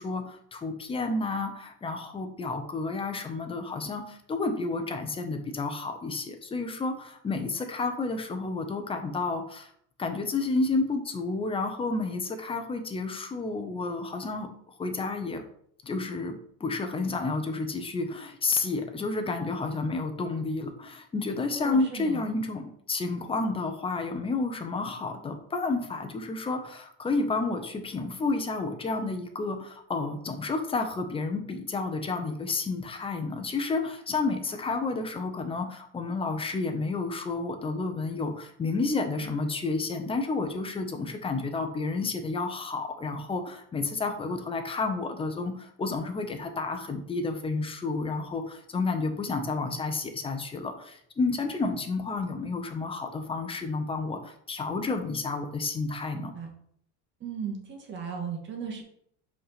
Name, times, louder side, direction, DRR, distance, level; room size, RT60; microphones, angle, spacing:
voice 1, 0.0-9.7 10.0-14.5 14.8-15.4 15.8-22.6 22.9-56.3, left 3 dB, 15° left, 6 dB, 1.0 m, -31 dB
voice 2, 21.5-22.2 56.1-56.5 57.2-58.8, right 6 dB, 35° right, 2 dB, 1.8 m, -36 dB
5.5 x 5.0 x 5.8 m, 0.67 s
cardioid pair, 140°, 31 cm